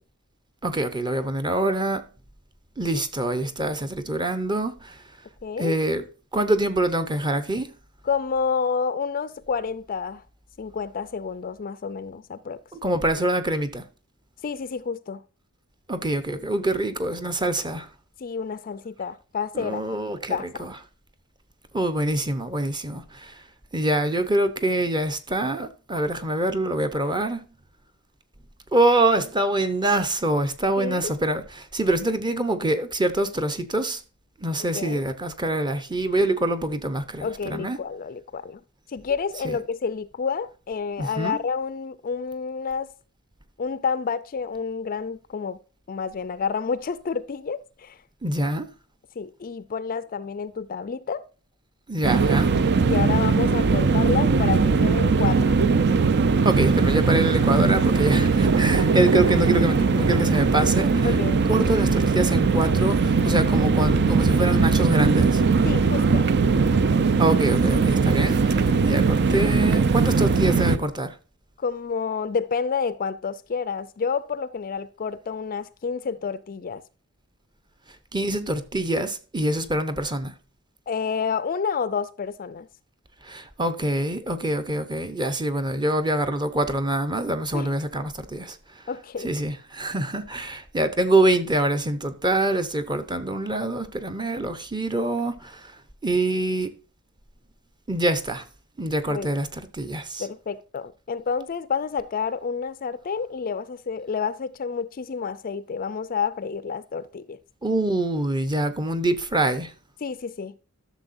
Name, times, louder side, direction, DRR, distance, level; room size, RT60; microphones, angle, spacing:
voice 1, 0.6-2.0 2.8-5.0 5.6-6.0 6.3-7.7 12.7-13.8 15.9-17.9 19.5-20.7 21.7-23.4 23.7-27.5 28.7-34.0 34.4-37.8 39.4-39.6 41.0-41.4 48.2-48.7 51.9-52.5 56.4-61.1 61.5-65.4 67.2-71.1 78.1-80.3 83.2-88.8 89.2-95.7 96.0-96.7 97.9-98.4 98.8-100.3 107.6-109.7, right 1 dB, 20° right, 0.8 m, -25 dB
voice 2, 5.4-5.7 8.0-10.2 10.6-12.6 14.4-15.2 18.2-19.8 20.3-20.7 30.8-31.1 34.6-35.0 37.2-38.6 38.9-42.9 43.6-45.6 45.9-48.0 49.2-51.2 52.8-55.6 61.0-61.4 65.6-66.3 71.6-76.8 80.9-82.7 87.5-87.7 88.9-89.3 99.1-99.3 100.2-107.4 110.0-110.6, left 5 dB, 40° left, 0.4 m, -29 dB
sound 1, 52.0-70.8, right 4 dB, 50° right, 0.5 m, -20 dB
12.5 x 6.7 x 2.6 m
head